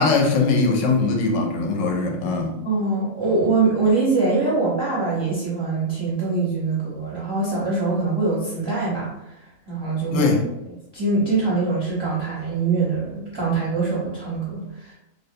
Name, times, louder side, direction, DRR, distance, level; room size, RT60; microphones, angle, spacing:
voice 1, 0.0-2.6 10.1-10.4, left 3 dB, 70° left, 1 dB, 0.9 m, -20 dB
voice 2, 2.6-9.1 9.7-10.3 10.9-14.9, right 3 dB, 30° right, -8 dB, 0.5 m, -23 dB
2.4 x 2.1 x 2.6 m, 0.90 s
omnidirectional pair, 1.4 m